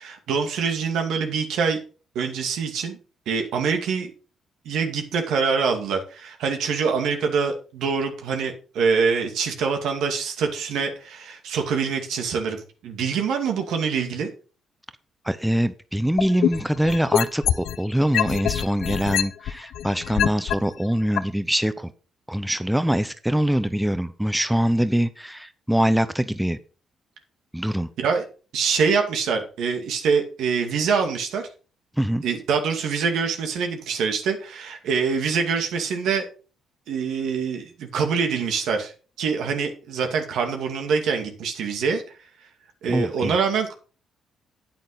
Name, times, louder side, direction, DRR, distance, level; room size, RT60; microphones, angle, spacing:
voice 1, 0.0-1.8 2.1-3.0 3.3-4.1 4.6-14.3 28.0-28.2 28.5-31.4 32.2-36.3 36.9-38.9 39.2-42.0 42.8-43.7, right 5 dB, 80° right, 4 dB, 2.4 m, -25 dB
voice 2, 15.2-21.9 22.3-26.6 27.5-27.9 32.0-32.2 42.9-43.3, equal, 5° right, 12 dB, 0.7 m, -23 dB
sound 1, 16.2-17.8 18.1-20.5 21.2-21.3, left 10 dB, 75° left, 0.6 m, -23 dB
9.2 x 9.1 x 4.0 m, 0.36 s
cardioid pair, 90°, 0 cm